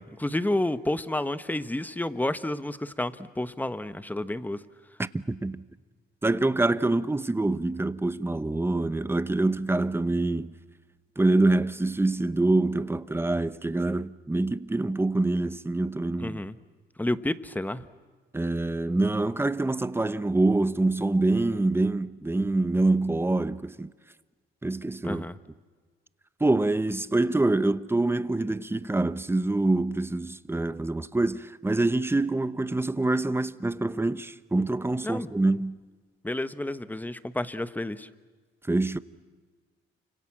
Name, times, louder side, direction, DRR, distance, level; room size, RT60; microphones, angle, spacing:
voice 1, 0.0-4.6 16.2-16.6 17.0-17.9 25.0-25.4 35.0-35.3 36.2-38.1, left 1 dB, 10° left, 1.2 m, -30 dB
voice 2, 5.0-5.6 6.2-10.5 11.2-16.4 18.3-23.9 24.6-25.3 26.4-35.8 38.7-39.0, right 2 dB, 10° right, 0.9 m, -25 dB
29.0 x 26.0 x 7.5 m
cardioid pair, 90°, 20 cm